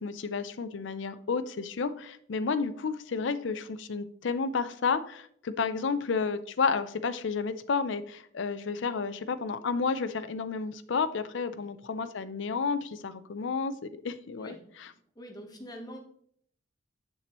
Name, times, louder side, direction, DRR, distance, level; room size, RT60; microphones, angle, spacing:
voice 1, 0.0-14.9, left 5 dB, 70° left, 12 dB, 0.5 m, -31 dB
voice 2, 15.1-16.0, equal, 20° left, 2 dB, 1.1 m, -45 dB
7.0 x 6.7 x 3.0 m, 0.64 s
head